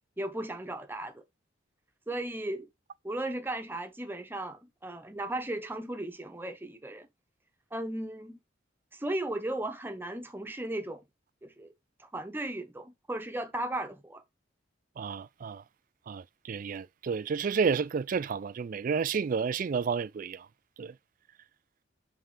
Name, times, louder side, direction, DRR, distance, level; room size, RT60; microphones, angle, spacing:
voice 1, 0.2-1.2 2.1-2.7 3.0-7.1 7.7-8.4 8.9-11.0 11.4-11.7 12.0-14.2, right 1 dB, 10° right, 0.8 m, -36 dB
voice 2, 15.0-15.6 16.1-20.5 20.8-20.9, right 5 dB, 45° right, 0.3 m, -31 dB
5.5 x 3.5 x 5.5 m
head